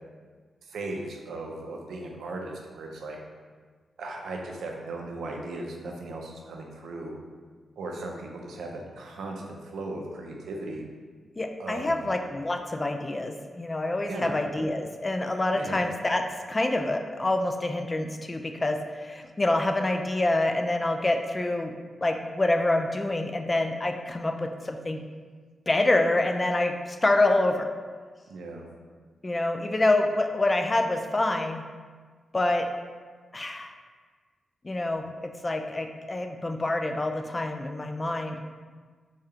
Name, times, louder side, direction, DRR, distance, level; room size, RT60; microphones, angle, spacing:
voice 1, 0.6-3.2 4.0-7.2 7.8-10.8 11.6-12.0 14.0-14.4 15.6-15.8 28.3-28.6, right 2 dB, 90° right, 0 dB, 0.5 m, -37 dB
voice 2, 11.4-16.2 16.5-21.7 22.0-25.0 25.7-27.7 29.2-31.6 32.3-32.7 33.3-33.7 34.6-38.4, left 2 dB, 25° left, 5 dB, 0.3 m, -26 dB
4.8 x 2.4 x 2.8 m, 1.5 s
cardioid pair, 80°, 0 cm